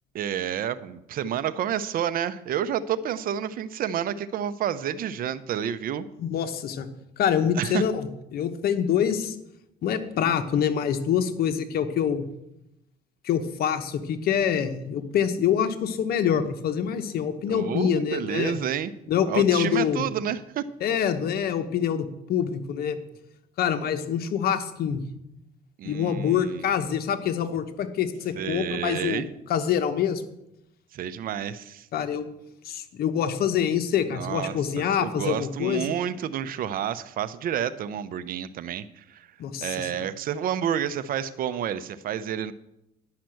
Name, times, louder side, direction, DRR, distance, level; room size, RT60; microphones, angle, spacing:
voice 1, 0.1-6.1 7.5-7.8 17.5-18.9 19.3-20.7 25.8-26.7 28.3-29.3 30.9-31.9 34.1-34.6 35.0-39.3 39.6-42.5, right 9 dB, 60° right, 15 dB, 0.7 m, -29 dB
voice 2, 6.2-6.9 7.2-9.4 9.8-12.3 13.2-18.6 19.1-20.1 20.8-23.0 23.6-25.0 25.8-29.2 29.5-30.2 31.9-32.2 32.6-35.9 39.4-40.1, left 8 dB, 65° left, 9 dB, 1.1 m, -25 dB
10.5 x 5.8 x 7.7 m, 0.85 s
cardioid pair, 110°, 17 cm